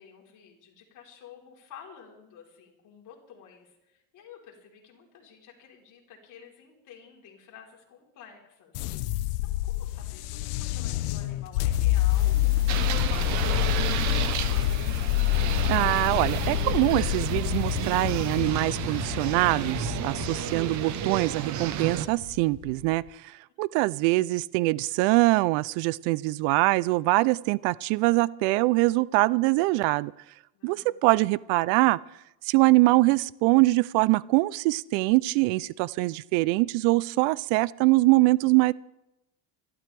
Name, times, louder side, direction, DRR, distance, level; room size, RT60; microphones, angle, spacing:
voice 1, 0.0-14.4 23.8-23.9 30.5-31.3, left 7 dB, 40° left, -1 dB, 4.0 m, -51 dB
sound 1, 8.7-22.9, left 15 dB, 85° left, 0.8 m, -28 dB
sound 2, 11.7-18.4, left 2 dB, 10° left, 2.6 m, -45 dB
sound 3, 12.7-22.1, right 9 dB, 40° right, 0.9 m, -32 dB
voice 2, 15.7-23.0 23.6-30.1 30.6-32.0 32.4-38.7, right 21 dB, 65° right, 21 dB, 0.5 m, -23 dB
26.0 x 12.5 x 3.4 m, 0.90 s
cardioid pair, 160°, 45 cm